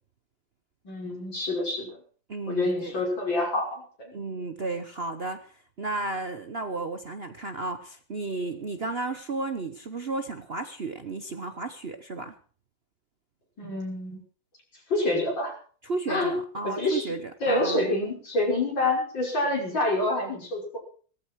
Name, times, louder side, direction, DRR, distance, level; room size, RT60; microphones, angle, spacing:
voice 1, 0.8-1.9 2.5-4.1 13.6-14.2 14.9-15.6 16.1-16.4 16.6-17.1 17.4-20.8, left 2 dB, 75° left, -1 dB, 6.7 m, -27 dB
voice 2, 2.3-2.9 4.1-12.3 15.8-17.9, right 3 dB, 40° right, 9 dB, 0.9 m, -33 dB
18.5 x 14.0 x 4.7 m, 0.42 s
omnidirectional pair, 2.1 m